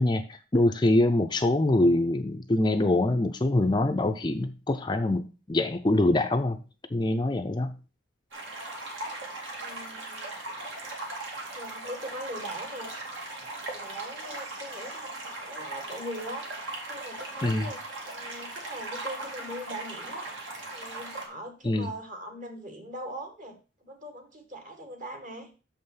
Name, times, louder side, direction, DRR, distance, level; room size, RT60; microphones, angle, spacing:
voice 1, 0.0-6.6 6.9-7.7 17.4-17.7 21.6-21.9, left 1 dB, 20° left, 7 dB, 0.4 m, -24 dB
sound 1, 8.3-21.3, right 2 dB, 70° right, 2.4 m, -38 dB
voice 2, 9.5-10.3 11.5-12.9 13.7-16.5 16.8-17.8 18.1-20.3 20.7-25.5, right 1 dB, 40° right, 5 dB, 1.8 m, -41 dB
7.1 x 5.5 x 5.6 m, 0.33 s
head